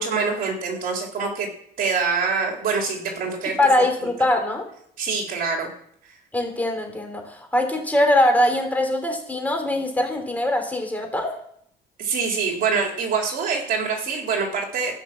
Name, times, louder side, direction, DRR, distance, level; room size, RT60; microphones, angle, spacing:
voice 1, 0.0-1.5 1.8-3.6 5.0-5.7 12.0-14.9, right 5 dB, 55° right, 1 dB, 4.1 m, -25 dB
voice 2, 3.6-4.6 6.3-11.3, left 1 dB, 10° left, 3 dB, 3.2 m, -22 dB
15.5 x 6.0 x 7.6 m, 0.68 s
cardioid pair, 110°, 17 cm